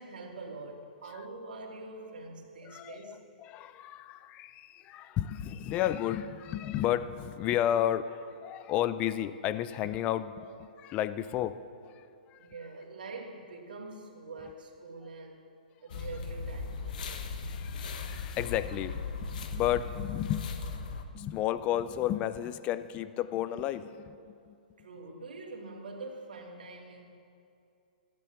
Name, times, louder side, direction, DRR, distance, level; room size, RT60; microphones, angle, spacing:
voice 1, 0.0-3.2 12.4-15.4 15.8-17.3 24.8-27.1, right 3 dB, 80° right, 0 dB, 2.7 m, -44 dB
voice 2, 2.6-11.6 12.0-12.4 17.5-20.5 21.1-24.5, left 11 dB, 25° left, 14 dB, 0.5 m, -32 dB
sound 1, 15.9-21.0, left 5 dB, 65° left, 1.3 m, -37 dB
15.0 x 10.5 x 6.8 m, 2.5 s
hypercardioid pair, 145°, 5 cm